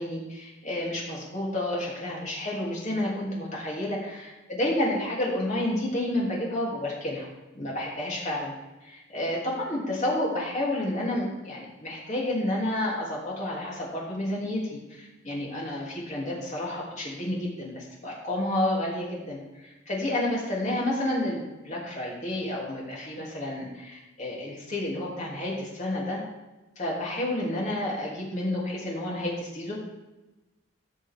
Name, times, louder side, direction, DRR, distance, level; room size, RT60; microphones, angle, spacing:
voice 1, 0.0-7.3 7.5-8.5 8.8-26.2 26.8-29.7, left 1 dB, 40° left, -4 dB, 3.0 m, -30 dB
16.5 x 6.2 x 3.7 m, 1.1 s
head